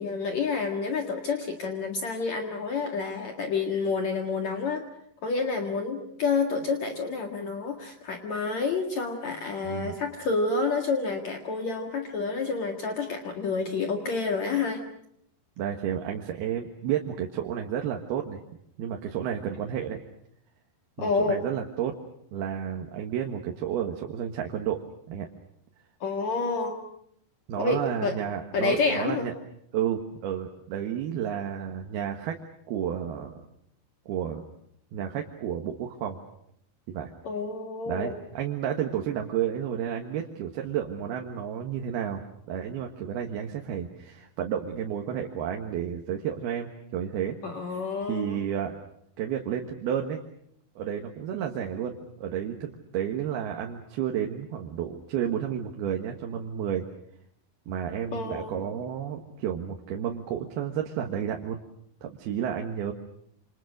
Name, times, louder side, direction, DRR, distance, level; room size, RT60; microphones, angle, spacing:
voice 1, 0.0-4.8 5.2-14.8 21.0-21.4 26.0-26.8 27.6-28.1 28.5-29.3 37.2-38.1 47.4-48.4 58.1-58.6, left 4 dB, 50° left, 3 dB, 2.9 m, -29 dB
voice 2, 9.6-10.0 15.6-18.4 18.8-20.0 21.0-21.9 22.3-24.8 25.1-25.3 27.5-29.3 29.7-32.4 32.7-33.4 34.1-34.4 34.9-36.2 36.9-37.1 37.9-47.4 48.0-48.8 49.2-50.2 50.8-56.9 57.7-61.6 62.0-62.9, right 9 dB, 90° right, 2 dB, 3.5 m, -31 dB
28.0 x 27.0 x 6.4 m, 0.71 s
omnidirectional pair, 4.4 m